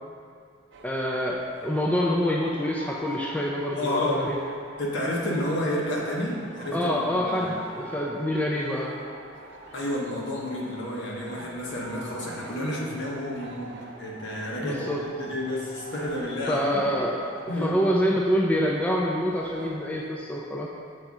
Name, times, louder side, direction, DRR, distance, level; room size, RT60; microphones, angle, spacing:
sound 1, 0.7-20.2, right 2 dB, 60° right, 0.5 m, -45 dB
voice 1, 0.8-4.4 6.7-9.0 14.6-15.0 16.5-20.7, equal, 5° left, -2 dB, 0.4 m, -26 dB
voice 2, 3.7-4.3 4.8-7.5 9.7-14.9 15.2-16.8 17.5-17.8, left 1 dB, 60° left, -3 dB, 1.1 m, -30 dB
6.7 x 3.6 x 4.1 m, 2.4 s
head